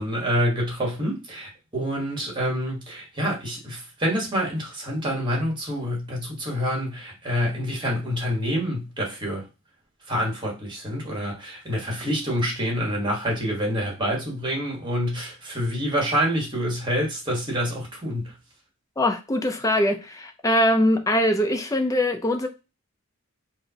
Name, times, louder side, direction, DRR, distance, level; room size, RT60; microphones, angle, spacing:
voice 1, 0.0-9.4 10.1-18.3, equal, 20° right, 1.3 m, -27 dB
voice 2, 19.0-22.5, left 1 dB, 15° left, 0.5 m, -22 dB
4.7 x 2.1 x 2.7 m
head